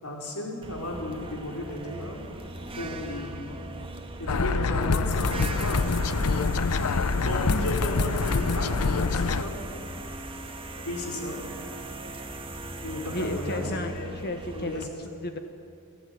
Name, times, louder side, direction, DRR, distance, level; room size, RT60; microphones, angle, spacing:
voice 1, 0.0-2.3 2.8-3.5 4.2-6.0 7.2-9.6 10.8-11.5 12.8-14.1 14.5-14.9, left 1 dB, 70° left, 0 dB, 5.0 m, -34 dB
sound 1, 0.6-14.8, right 2 dB, 25° right, 1.8 m, -39 dB
sound 2, 4.3-9.4, left 4 dB, 90° left, 0.8 m, -25 dB
voice 2, 7.4-8.1 13.1-14.9 15.2-15.4, left 1 dB, 50° left, 6 dB, 1.4 m, -34 dB
28.5 x 15.0 x 9.7 m, 2.6 s
head